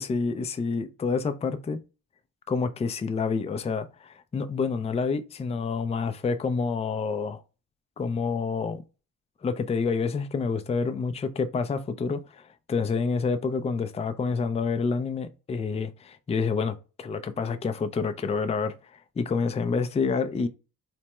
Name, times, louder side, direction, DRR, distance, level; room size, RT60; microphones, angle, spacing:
voice 1, 0.0-1.8 2.5-7.4 8.0-8.8 9.4-18.7 19.2-20.5, left 5 dB, 20° left, 0.4 m, -28 dB
3.3 x 2.1 x 2.9 m
cardioid pair, 80°, 32 cm